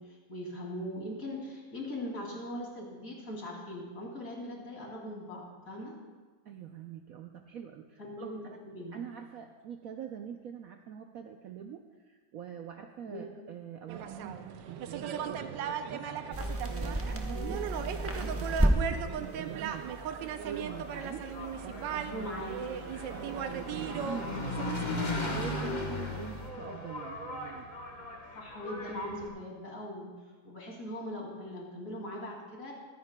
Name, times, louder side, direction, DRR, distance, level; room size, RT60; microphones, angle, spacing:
voice 1, 0.0-5.9 8.0-9.1 13.0-13.2 17.3-17.6 22.1-22.8 28.3-30.1 30.4-32.7, left 1 dB, 50° left, -3 dB, 3.1 m, -40 dB
voice 2, 6.4-8.6 8.9-16.4 16.7-17.4 17.8-19.9 20.4-21.3 21.6-22.5 23.1-24.8 25.2-27.7, right 8 dB, 65° right, 4 dB, 0.9 m, -44 dB
sound 1, 13.9-24.9, right 8 dB, 90° right, 1.3 m, -38 dB
sound 2, 16.3-26.5, right 1 dB, 10° right, 0.6 m, -36 dB
Engine, 20.4-29.3, left 2 dB, 30° left, 1.2 m, -38 dB
23.5 x 9.7 x 2.2 m, 1.4 s
omnidirectional pair, 1.9 m